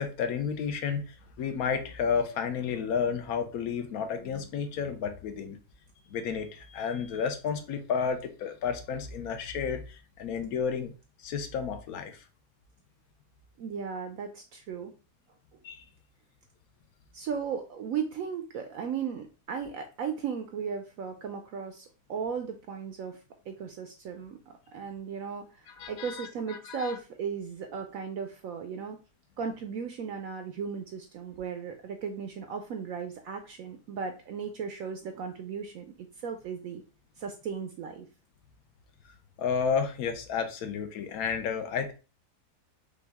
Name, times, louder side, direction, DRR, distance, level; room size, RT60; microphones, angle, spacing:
voice 1, 0.0-5.6 6.1-10.9 11.2-12.2 15.6-15.8 25.8-27.0 39.0-39.1 39.4-41.9, left 6 dB, 65° left, 7 dB, 1.1 m, -32 dB
voice 2, 13.6-14.9 17.1-29.0 29.4-36.8 37.2-38.1, right 6 dB, 70° right, 6 dB, 0.9 m, -36 dB
5.4 x 2.4 x 3.4 m, 0.32 s
omnidirectional pair, 1.8 m